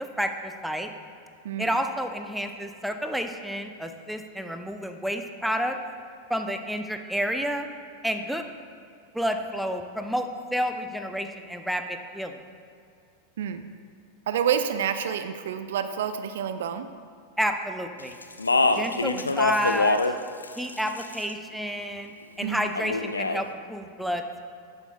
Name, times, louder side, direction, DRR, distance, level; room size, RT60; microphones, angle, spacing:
voice 1, 0.2-0.9 1.6-5.8 6.3-7.7 8.0-8.4 9.1-12.4 17.4-18.1 18.8-20.0 20.6-22.1 22.4-24.4, equal, ahead, 6 dB, 0.5 m, -30 dB
voice 2, 14.3-16.9 19.1-19.4 22.4-22.6, right 8 dB, 60° right, 10 dB, 0.4 m, -28 dB
Speech, 18.2-20.2 20.4-21.3 22.7-23.4, left 3 dB, 80° left, 0.3 m, -24 dB
11.5 x 8.0 x 2.2 m, 2.4 s
figure-of-eight pair, 90°, 0 cm